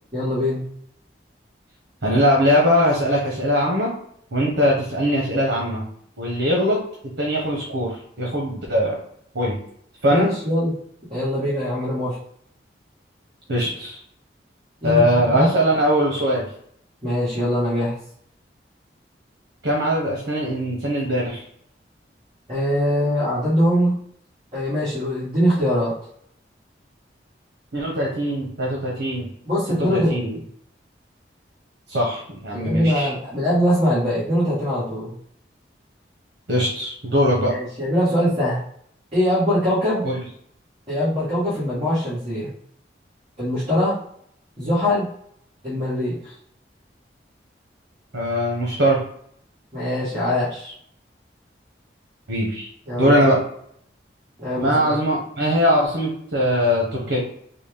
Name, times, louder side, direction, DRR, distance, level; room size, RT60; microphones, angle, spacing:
voice 1, 0.1-0.7 10.1-10.7 11.1-12.2 14.8-15.5 17.0-18.0 22.5-24.0 24.5-25.9 29.4-30.4 32.5-35.1 37.5-38.6 39.1-40.0 40.9-42.5 43.4-44.0 44.6-45.1 45.6-46.3 49.7-50.7 52.9-53.1 54.4-55.0, equal, 30° right, -11 dB, 1.5 m, -22 dB
voice 2, 2.0-3.9 4.3-5.8 6.2-6.8 7.2-9.0 9.3-9.6 10.0-10.3 13.5-14.0 14.8-16.4 19.6-21.4 27.7-29.3 29.8-30.3 31.9-33.1 36.5-37.5 40.0-40.2 48.1-49.0 52.3-52.7 53.0-53.4 54.6-57.2, equal, 80° right, -2 dB, 1.0 m, -21 dB
4.0 x 2.3 x 3.5 m, 0.65 s
head